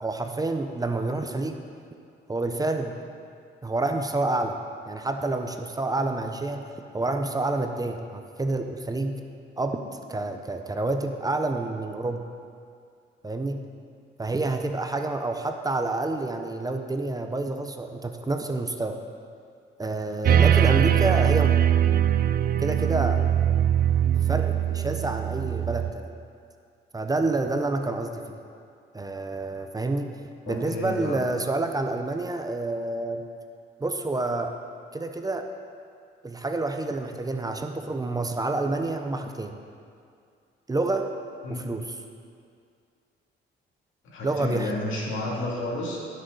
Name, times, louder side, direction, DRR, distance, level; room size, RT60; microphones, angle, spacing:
voice 1, 0.0-1.6 2.3-3.0 3.6-4.6 4.9-6.7 6.9-9.2 9.6-12.3 13.2-13.6 14.2-19.0 19.8-21.5 22.6-23.2 24.0-26.1 26.9-28.4 28.9-30.1 30.5-33.2 33.8-34.5 34.9-35.5 36.2-39.6 40.7-41.1 41.5-41.9 44.2-44.7, right 2 dB, 20° right, 5 dB, 0.7 m, -28 dB
sound 1, 20.3-25.9, right 10 dB, 50° right, 0.4 m, -21 dB
voice 2, 20.5-20.9 30.5-31.2 41.4-41.7 44.0-46.0, left 2 dB, 85° left, -3 dB, 2.3 m, -31 dB
16.0 x 6.4 x 4.0 m, 2.3 s
cardioid pair, 90°, 20 cm